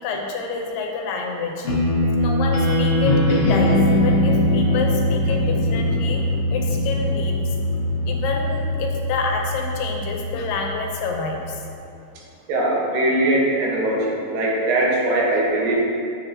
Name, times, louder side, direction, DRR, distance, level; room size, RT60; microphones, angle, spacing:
voice 1, 0.0-1.7 2.2-6.2 6.5-7.6 8.1-11.6 15.2-15.3, left 4 dB, 85° left, 1 dB, 2.5 m, -28 dB
sound 1, 1.6-11.7, left 1 dB, 60° left, 1.6 m, -21 dB
voice 2, 12.5-15.7, right 1 dB, 85° right, -4 dB, 3.1 m, -21 dB
9.4 x 7.4 x 2.8 m, 2.6 s
omnidirectional pair, 3.9 m